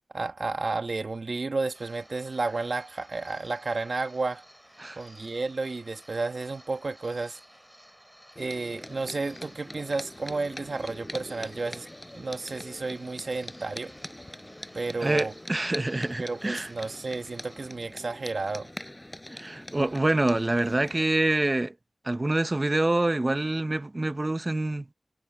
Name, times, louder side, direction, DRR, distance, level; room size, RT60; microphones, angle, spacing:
voice 1, 0.1-4.4 5.0-7.4 8.4-11.9 12.1-13.9 14.7-15.3 16.2-18.7, right 3 dB, 55° right, 1.5 m, -32 dB
sound 1, 1.7-17.7, equal, 5° right, 5.0 m, -54 dB
sound 2, 8.4-21.0, left 1 dB, 15° left, 6.8 m, -43 dB
voice 2, 15.0-16.7 19.3-21.7 22.0-24.9, right 2 dB, 30° right, 0.8 m, -26 dB
wide cardioid pair, 75°, 0 cm